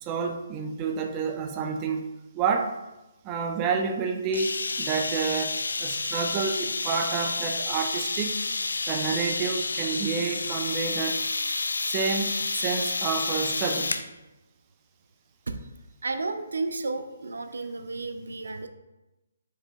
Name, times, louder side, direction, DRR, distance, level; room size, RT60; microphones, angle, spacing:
voice 1, 0.0-2.1 2.3-2.7 3.2-8.4 8.9-11.2 11.8-14.0, right 5 dB, 20° right, 4 dB, 0.4 m, -29 dB
sound 1, 4.3-14.1, left 3 dB, 90° left, 0.3 m, -30 dB
voice 2, 16.0-18.7, right 3 dB, 85° right, 8 dB, 0.4 m, -32 dB
4.7 x 2.9 x 3.4 m, 1.0 s
hypercardioid pair, 155°, 0 cm